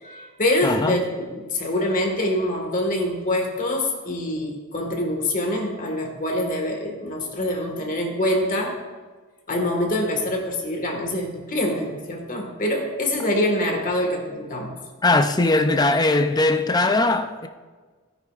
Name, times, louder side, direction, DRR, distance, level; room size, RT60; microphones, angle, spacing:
voice 1, 0.0-8.8 9.5-14.7, left 1 dB, 40° left, 1.7 m, -25 dB
voice 2, 0.6-1.0 15.0-17.5, left 2 dB, 20° left, 0.5 m, -20 dB
16.5 x 9.9 x 2.5 m
head